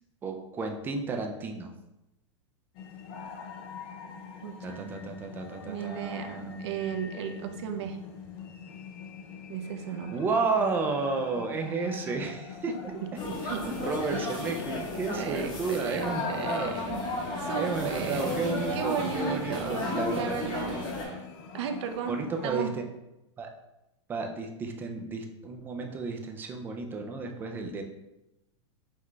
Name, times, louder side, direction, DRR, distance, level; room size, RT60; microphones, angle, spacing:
voice 1, 0.2-1.7 4.6-6.9 7.4-7.9 10.1-12.7 13.6-16.8 17.5-20.3 22.1-22.8 23.4-23.5 24.1-27.8, right 4 dB, 10° right, 3 dB, 0.3 m, -32 dB
sound 1, 2.7-22.5, left 6 dB, 45° left, 0.5 m, -44 dB
voice 2, 4.4-5.0 5.7-8.0 9.5-10.2 12.7-12.8 13.5-13.6 14.1-14.5 15.1-17.0 17.3-20.8 21.5-22.7, right 7 dB, 60° right, 5 dB, 0.6 m, -35 dB
sound 2, 13.1-21.0, left 2 dB, 25° left, 0.9 m, -34 dB
Snare drum, 16.4-21.3, equal, 30° right, 0.8 m, -40 dB
5.8 x 2.3 x 3.2 m, 0.94 s
supercardioid pair, 155°, 16 cm